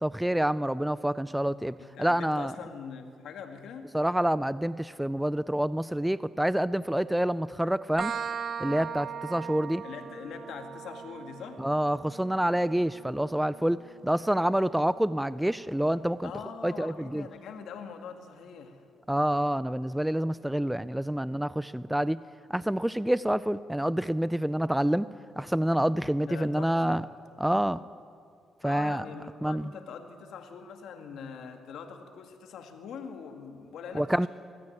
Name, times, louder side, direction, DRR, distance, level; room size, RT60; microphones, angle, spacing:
voice 1, 0.0-2.5 3.9-8.1 8.6-9.8 11.6-16.3 16.6-17.3 19.1-22.2 22.5-25.1 25.4-27.0 27.4-27.8 28.6-29.0 29.4-29.7 33.9-34.3, right 1 dB, 5° right, 16 dB, 0.4 m, -27 dB
voice 2, 1.8-3.9 9.8-11.6 16.2-18.9 26.2-27.0 28.6-34.3, left 6 dB, 75° left, 5 dB, 2.1 m, -43 dB
sound 1, 8.0-15.4, right 7 dB, 50° right, 0.7 m, -40 dB
21.0 x 14.0 x 9.9 m, 2.3 s
cardioid pair, 90°, 0 cm